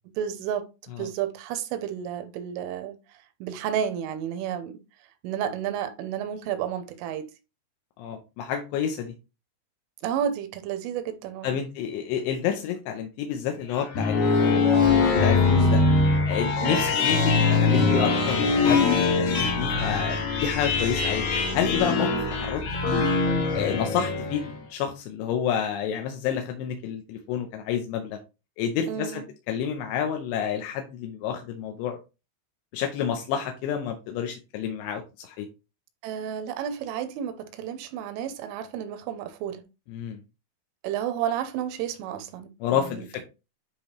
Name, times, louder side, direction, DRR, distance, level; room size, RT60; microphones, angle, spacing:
voice 1, 0.2-4.8 5.2-7.3 10.0-11.6 16.6-17.0 28.9-29.3 36.0-39.6 40.8-43.2, right 9 dB, 85° right, 3.0 m, -31 dB
voice 2, 8.0-9.1 11.4-14.6 15.1-15.8 16.3-21.2 21.5-23.0 23.6-28.2 28.6-32.0 32.7-35.5 39.9-40.2 42.6-43.2, left 8 dB, 85° left, 2.5 m, -29 dB
sound 1, 13.7-24.5, left 4 dB, 65° left, 3.1 m, -22 dB
9.7 x 3.5 x 3.1 m
omnidirectional pair, 5.8 m